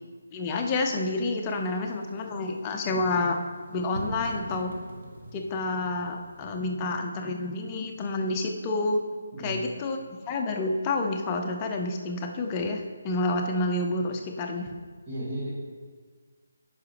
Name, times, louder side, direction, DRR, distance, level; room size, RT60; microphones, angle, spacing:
voice 1, 0.3-3.4 3.7-4.7 5.3-9.1 9.4-14.7, left 2 dB, 20° left, 2 dB, 0.7 m, -29 dB
sound 1, 1.5-6.6, right 1 dB, 50° right, 0.9 m, -44 dB
voice 2, 15.1-15.5, right 1 dB, 30° right, -9 dB, 2.0 m, -34 dB
9.3 x 5.6 x 3.4 m, 1.5 s
figure-of-eight pair, 150°, 0 cm